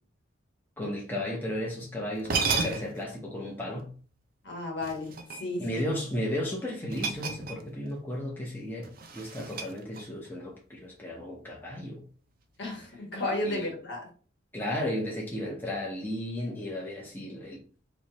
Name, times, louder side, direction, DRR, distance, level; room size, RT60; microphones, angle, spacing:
voice 1, 0.8-3.9 5.6-8.9 9.1-12.0 13.4-13.7 14.5-17.6, left 1 dB, 10° left, 0.8 m, -34 dB
sound 1, 1.8-1.9 2.2-3.1 4.8-5.7 6.9-7.9 8.1-8.4 8.8-10.3, right 4 dB, 45° right, 0.5 m, -33 dB
voice 2, 4.4-5.8 12.6-14.1, left 2 dB, 60° left, 1.3 m, -33 dB
3.2 x 2.8 x 4.1 m
head